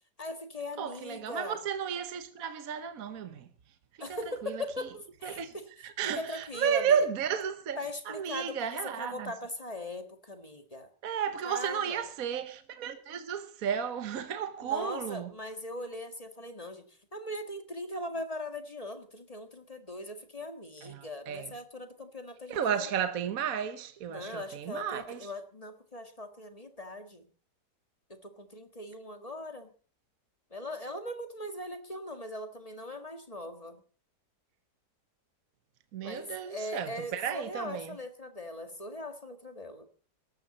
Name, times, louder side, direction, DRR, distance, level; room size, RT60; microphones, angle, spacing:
voice 1, 0.2-1.6 4.0-5.6 6.1-7.0 7.8-8.6 9.0-10.9 11.5-12.0 14.6-22.6 24.1-27.3 28.1-29.7 30.5-33.8 36.0-39.9, left 1 dB, 20° left, 1.7 m, -40 dB
voice 2, 0.8-3.5 4.0-4.9 5.2-7.8 8.0-9.3 11.0-15.3 20.8-21.5 22.5-25.3 35.9-38.0, right 7 dB, 60° right, 1.4 m, -33 dB
18.5 x 14.5 x 4.2 m
omnidirectional pair, 1.8 m